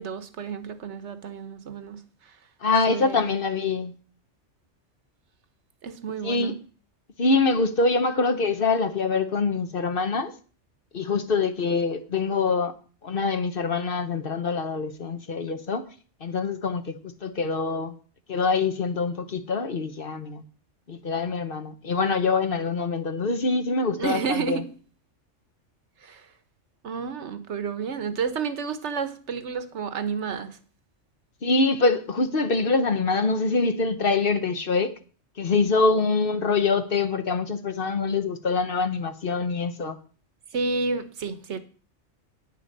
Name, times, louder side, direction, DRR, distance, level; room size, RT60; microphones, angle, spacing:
voice 1, 0.0-2.4 2.9-3.3 5.8-6.6 24.0-24.7 26.0-26.3 26.8-30.6 40.5-41.6, right 5 dB, 70° right, 1.2 m, -31 dB
voice 2, 2.6-3.9 6.2-6.5 7.2-10.3 10.9-12.7 13.0-15.9 16.2-17.9 18.3-20.4 20.9-24.6 31.4-34.9 35.4-40.0, left 4 dB, 50° left, 1.1 m, -24 dB
9.6 x 6.8 x 6.6 m
omnidirectional pair, 1.3 m